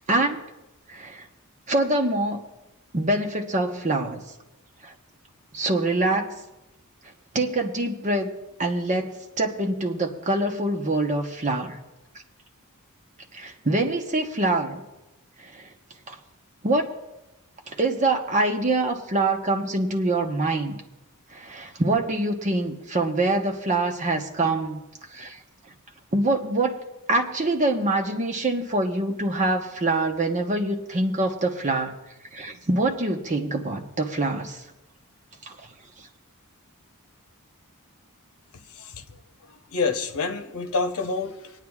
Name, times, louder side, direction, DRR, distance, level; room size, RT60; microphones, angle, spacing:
voice 1, 0.1-0.4 0.9-1.3 1.7-2.4 2.9-4.2 4.8-4.9 5.5-6.4 7.3-8.3 8.6-11.8 13.3-14.8 15.4-15.7 16.1-16.2 16.6-16.9 17.7-20.8 21.3-24.8 25.1-25.4 26.1-26.8 27.1-31.9 32.3-34.6 35.5-35.6, right 2 dB, 35° right, 3 dB, 1.0 m, -25 dB
voice 2, 38.7-39.2 39.5-41.5, left 4 dB, 70° left, 6 dB, 0.9 m, -28 dB
27.0 x 9.2 x 2.4 m, 1.0 s
head